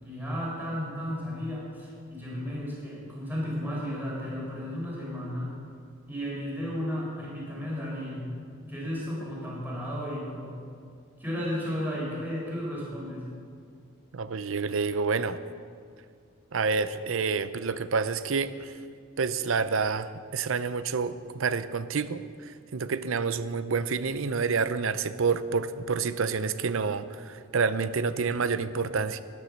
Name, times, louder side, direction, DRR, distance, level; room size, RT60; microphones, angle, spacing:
voice 1, 0.0-5.5 6.1-8.3 8.7-10.6 11.2-13.3, equal, 10° right, -5 dB, 4.2 m, -34 dB
voice 2, 14.1-15.4 16.5-18.7 19.2-29.2, right 5 dB, 65° right, 14 dB, 0.6 m, -28 dB
13.0 x 10.5 x 6.5 m, 2.2 s
head